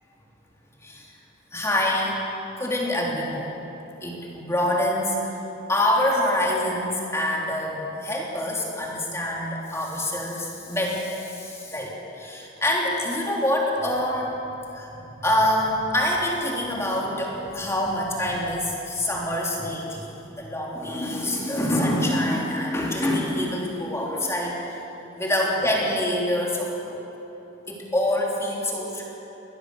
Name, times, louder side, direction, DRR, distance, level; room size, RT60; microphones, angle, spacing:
voice 1, 1.5-2.2 2.6-3.5 4.0-5.4 5.7-14.3 14.7-24.8 25.2-27.0 27.7-29.0, left 1 dB, 15° left, -3 dB, 3.3 m, -26 dB
22.5 x 18.5 x 6.8 m, 3.0 s
head